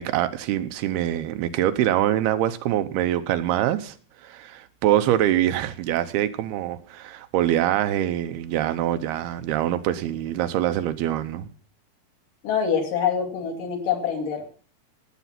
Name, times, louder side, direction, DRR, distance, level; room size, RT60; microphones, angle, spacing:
voice 1, 0.0-4.0 4.2-11.5, right 12 dB, 85° right, 10 dB, 2.8 m, -24 dB
voice 2, 12.4-14.5, left 7 dB, 60° left, 2 dB, 3.8 m, -25 dB
17.5 x 8.2 x 5.9 m, 0.43 s
omnidirectional pair, 4.5 m